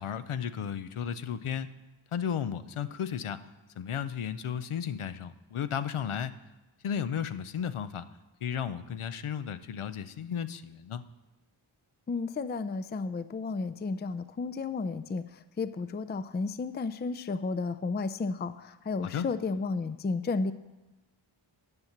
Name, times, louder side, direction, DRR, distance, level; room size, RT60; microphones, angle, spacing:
voice 1, 0.0-1.7 2.1-3.4 3.8-6.3 6.8-8.1 8.4-11.0 19.0-19.3, left 8 dB, 90° left, 13 dB, 0.6 m, -34 dB
voice 2, 12.1-15.2 15.6-20.5, left 4 dB, 25° left, 12 dB, 0.4 m, -32 dB
11.0 x 5.8 x 7.1 m, 1.1 s
wide cardioid pair, 60°, 48 cm